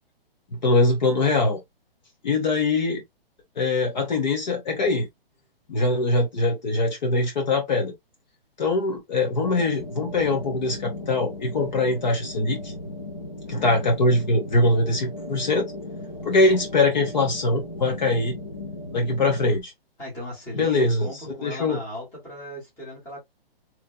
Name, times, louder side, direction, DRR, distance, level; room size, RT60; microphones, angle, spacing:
voice 1, 0.5-1.6 2.2-3.0 3.6-5.1 5.7-7.9 8.6-12.7 13.5-15.7 16.2-18.4 18.9-19.7 20.5-21.1 21.4-21.8, left 2 dB, 45° left, 1.1 m, -22 dB
sound 1, 9.4-19.5, left 1 dB, 30° left, 0.4 m, -37 dB
voice 2, 20.0-23.2, equal, 10° left, 1.3 m, -37 dB
3.2 x 2.6 x 2.4 m
hypercardioid pair, 175°, 30 cm